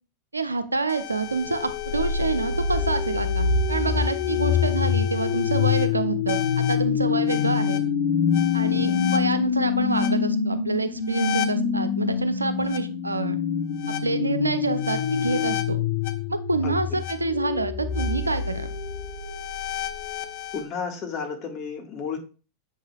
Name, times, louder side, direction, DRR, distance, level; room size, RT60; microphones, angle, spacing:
voice 1, 0.3-7.8 8.5-13.4 13.9-15.8 16.3-18.7, right 3 dB, 80° right, 11 dB, 0.5 m, -27 dB
sound 1, 0.9-20.6, left 7 dB, 50° left, 0.8 m, -26 dB
voice 2, 8.6-9.0 16.6-17.0 20.5-22.2, left 5 dB, 35° left, 3 dB, 1.6 m, -33 dB
7.3 x 5.6 x 2.3 m, 0.33 s
figure-of-eight pair, 90°, 0 cm